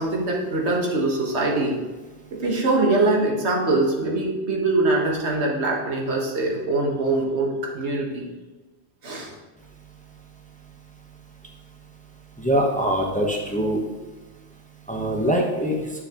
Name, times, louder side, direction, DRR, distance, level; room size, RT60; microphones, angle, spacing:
voice 1, 0.0-1.8 2.3-8.2 9.0-9.3, right 2 dB, 85° right, -1 dB, 1.6 m, -23 dB
voice 2, 12.4-13.8 14.9-15.8, right 1 dB, 10° left, 0 dB, 0.8 m, -23 dB
9.7 x 6.6 x 2.9 m, 1.2 s
omnidirectional pair, 1.1 m